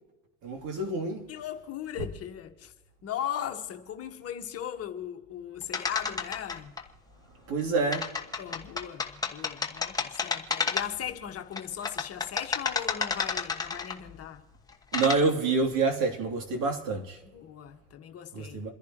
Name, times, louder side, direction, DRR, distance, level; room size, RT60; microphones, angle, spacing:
voice 1, 0.4-1.3 7.5-8.1 14.9-17.2 18.3-18.7, right 3 dB, 50° right, 3.1 m, -27 dB
voice 2, 1.3-2.7 3.0-6.7 8.4-14.4 17.3-18.7, left 10 dB, 35° left, 1.5 m, -38 dB
sound 1, 5.7-6.8 7.9-11.1 11.6-14.1 14.7-15.2, left 5 dB, 10° left, 1.3 m, -31 dB
29.0 x 10.5 x 3.0 m
supercardioid pair, 115°, 41 cm